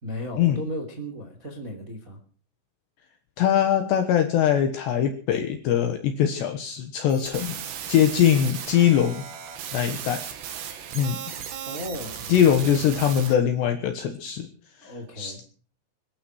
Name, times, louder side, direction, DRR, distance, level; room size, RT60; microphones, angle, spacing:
voice 1, 0.0-2.2 11.7-12.3 14.8-15.4, equal, 20° right, 3 dB, 2.4 m, -35 dB
voice 2, 3.4-7.6 7.9-9.2 9.7-10.2 10.9-11.2 12.3-14.5 14.8-15.5, left 9 dB, 70° left, 6 dB, 3.1 m, -22 dB
sound 1, 7.1-13.3, right 8 dB, 65° right, 3.8 m, -36 dB
23.0 x 12.5 x 4.7 m, 0.42 s
omnidirectional pair, 5.9 m